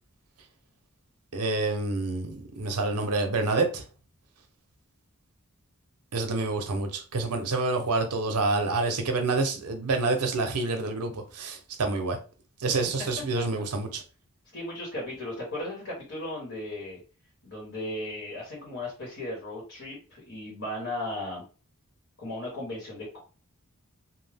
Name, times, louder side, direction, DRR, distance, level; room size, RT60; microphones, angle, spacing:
voice 1, 1.3-3.8 6.1-12.2 12.6-14.0, right 3 dB, 85° right, 0.6 m, -27 dB
voice 2, 14.5-17.0 17.4-21.4 22.2-23.2, left 1 dB, 60° left, 1.1 m, -36 dB
2.3 x 2.1 x 3.3 m
head